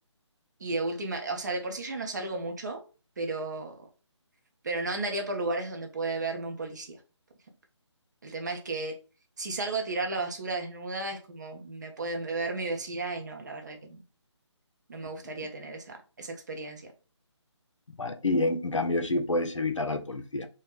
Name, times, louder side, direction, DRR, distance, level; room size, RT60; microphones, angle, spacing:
voice 1, 0.6-2.8 3.2-3.7 4.6-7.0 8.2-9.0 9.4-14.0 14.9-16.9, right 3 dB, 40° right, 0.5 m, -33 dB
voice 2, 18.0-20.5, left 2 dB, 90° left, 0.5 m, -28 dB
3.3 x 2.1 x 2.4 m
figure-of-eight pair, 150°, 15 cm